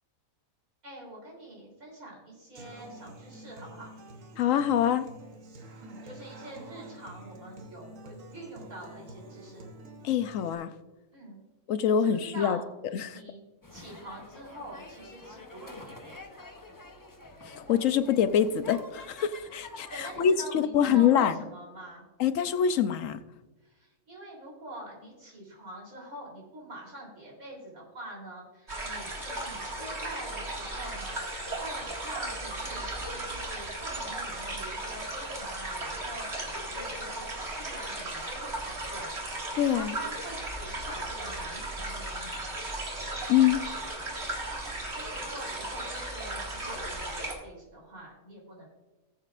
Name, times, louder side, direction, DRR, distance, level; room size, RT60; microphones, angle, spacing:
voice 1, 0.8-3.9 5.7-9.6 11.1-11.4 11.9-12.7 13.1-13.4 13.7-16.5 19.9-22.1 23.6-39.1 39.7-42.4 44.9-48.7, right 1 dB, 90° right, -2 dB, 3.9 m, -45 dB
Human voice / Acoustic guitar, 2.5-10.5, right 1 dB, 70° right, 1.4 m, -48 dB
voice 2, 4.4-5.1 10.0-10.7 11.7-12.6 12.9-13.1 17.4-21.4 22.2-23.2 39.6-39.9 43.3-43.6, left 9 dB, 75° left, 11 dB, 1.0 m, -25 dB
sound 1, 13.6-20.3, left 2 dB, 20° left, 0.6 m, -48 dB
sound 2, 28.7-47.3, right 1 dB, 50° right, 2.2 m, -36 dB
19.0 x 7.6 x 2.5 m, 1.1 s
omnidirectional pair, 1.4 m